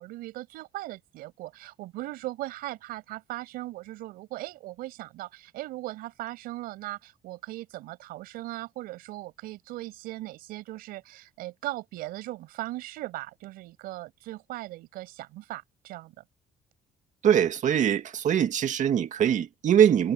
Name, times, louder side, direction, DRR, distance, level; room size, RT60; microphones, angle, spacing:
voice 1, 0.0-16.2, right 17 dB, 90° right, 5.7 m, -38 dB
voice 2, 17.2-20.1, right 9 dB, 55° right, 2.0 m, -22 dB
cardioid pair, 95°, 15 cm